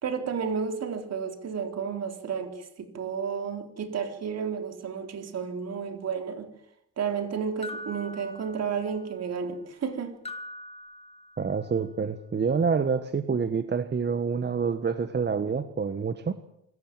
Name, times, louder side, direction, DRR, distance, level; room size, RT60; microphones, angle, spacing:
voice 1, 0.0-6.5 7.0-10.2, right 6 dB, 55° right, 3.9 m, -32 dB
sound 1, 7.6-9.1 10.3-11.7, left 2 dB, 20° left, 2.3 m, -42 dB
voice 2, 11.4-16.3, right 5 dB, 35° right, 1.4 m, -27 dB
26.0 x 14.5 x 9.1 m
cardioid pair, 90°, 30 cm